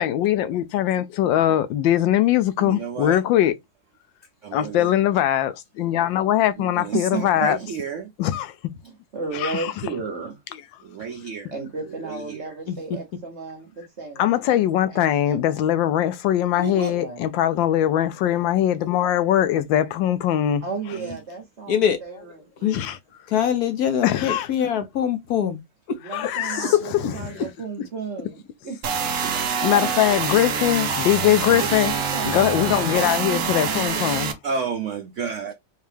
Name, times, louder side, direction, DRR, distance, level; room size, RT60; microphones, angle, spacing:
voice 1, 0.0-3.5 4.5-7.6 8.2-8.5 9.3-9.7 14.2-20.6 22.7-23.0 24.0-24.5 26.1-27.4 29.6-31.9 32.3-34.3, left 12 dB, 80° left, 1.3 m, -21 dB
voice 2, 2.6-3.2 4.4-4.9 6.6-8.1 10.8-11.5 11.9-12.4 16.6-16.9 20.9-21.2 26.4-26.8 27.0-27.5 29.2-29.9 34.4-35.5, right 5 dB, 85° right, 0.6 m, -32 dB
voice 3, 6.9-7.5 8.8-10.4 11.5-14.6 14.9-15.0 15.3-15.6 16.9-17.2 20.6-22.9 24.2-24.3 26.0-28.8 31.3-33.8, right 5 dB, 45° right, 1.2 m, -34 dB
voice 4, 23.3-25.6 32.8-32.9, left 9 dB, 65° left, 1.0 m, -23 dB
sound 1, 28.8-34.3, right 6 dB, 60° right, 0.9 m, -25 dB
4.5 x 2.4 x 3.3 m
omnidirectional pair, 2.0 m